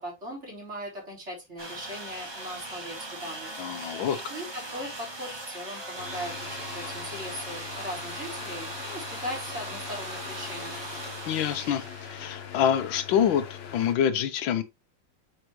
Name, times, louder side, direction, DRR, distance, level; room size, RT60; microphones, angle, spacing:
voice 1, 0.0-3.5 4.3-10.8, equal, 35° right, 3.8 m, -39 dB
sound 1, 1.6-12.7, right 2 dB, 15° right, 1.2 m, -39 dB
voice 2, 3.6-4.3 11.3-14.6, left 9 dB, 85° left, 1.6 m, -26 dB
sound 2, 6.0-14.0, left 8 dB, 65° left, 0.6 m, -42 dB
7.9 x 5.0 x 3.1 m
omnidirectional pair, 2.1 m